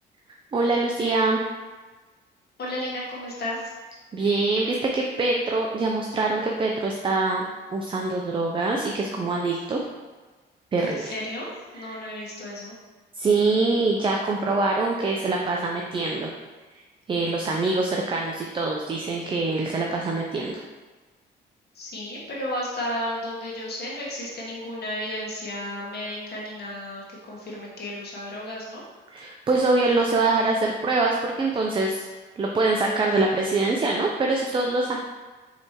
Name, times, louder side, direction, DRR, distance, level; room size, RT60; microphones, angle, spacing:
voice 1, 0.5-1.4 4.1-7.4 7.7-9.8 10.7-11.1 11.7-12.0 13.1-16.3 17.1-20.6 29.1-32.1 32.4-35.0, right 3 dB, 25° right, 1 dB, 0.4 m, -24 dB
voice 2, 2.6-3.7 10.8-12.7 21.7-28.8, left 1 dB, 55° left, -4 dB, 1.4 m, -33 dB
4.6 x 3.3 x 2.8 m, 1.3 s
cardioid pair, 90°, 20 cm